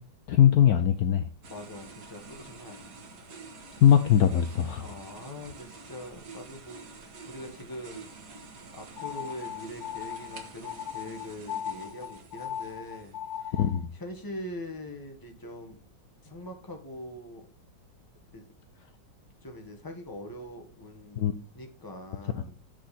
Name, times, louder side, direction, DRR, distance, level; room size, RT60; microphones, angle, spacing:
voice 1, 0.3-1.3 3.8-4.9 13.5-13.9 21.2-21.3, left 9 dB, 65° left, 8 dB, 1.0 m, -21 dB
sound 1, 1.4-13.7, right 4 dB, 60° right, 1.9 m, -48 dB
voice 2, 1.5-3.0 3.4-3.8 4.8-8.1 8.7-13.6 13.9-15.8 16.2-17.5 18.3-18.4 19.4-22.6, left 1 dB, 15° left, 3 dB, 1.3 m, -43 dB
sound 2, 9.0-13.9, left 9 dB, 85° left, 1.5 m, -38 dB
8.4 x 6.3 x 4.2 m, 0.36 s
omnidirectional pair, 2.0 m